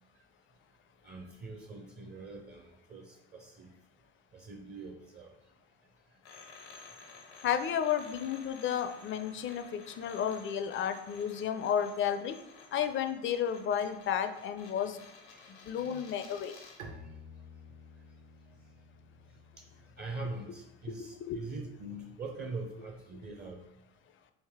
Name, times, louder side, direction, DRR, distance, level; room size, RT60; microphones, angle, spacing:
voice 1, 1.0-3.7 4.3-5.3 11.4-11.5 15.3-15.7 16.9-17.2 18.5-18.6 19.6-23.7, right 3 dB, 30° right, 3 dB, 0.5 m, -43 dB
sound 1, 6.2-16.9, left 4 dB, 85° left, 0.7 m, -53 dB
voice 2, 7.4-12.4 12.7-15.0 15.7-16.5 21.0-21.4, left 8 dB, 35° left, 9 dB, 0.4 m, -32 dB
Bowed string instrument, 16.8-22.4, left 1 dB, 60° right, 0.8 m, -53 dB
3.3 x 2.5 x 3.6 m, 0.85 s
hypercardioid pair, 55°, 34 cm